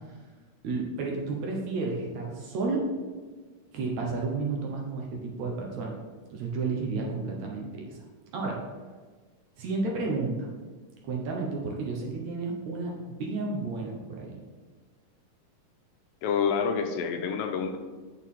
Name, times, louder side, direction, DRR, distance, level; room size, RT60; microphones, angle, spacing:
voice 1, 0.6-2.8 3.7-6.0 6.3-8.0 8.3-8.6 9.6-10.5 11.0-14.3, right 3 dB, 65° right, -1 dB, 2.0 m, -31 dB
voice 2, 16.2-17.8, left 6 dB, 80° left, 6 dB, 2.3 m, -27 dB
8.8 x 6.6 x 3.7 m, 1.4 s
omnidirectional pair, 4.0 m